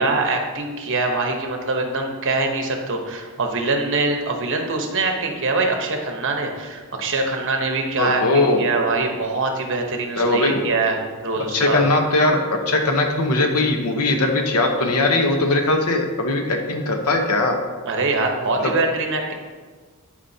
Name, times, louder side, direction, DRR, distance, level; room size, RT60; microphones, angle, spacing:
voice 1, 0.0-11.8 17.9-19.3, right 3 dB, 60° right, 3 dB, 1.0 m, -23 dB
voice 2, 8.0-8.6 10.2-10.6 11.5-17.5 18.6-18.7, left 2 dB, 85° left, 4 dB, 1.0 m, -20 dB
11.0 x 5.0 x 2.8 m, 1.5 s
head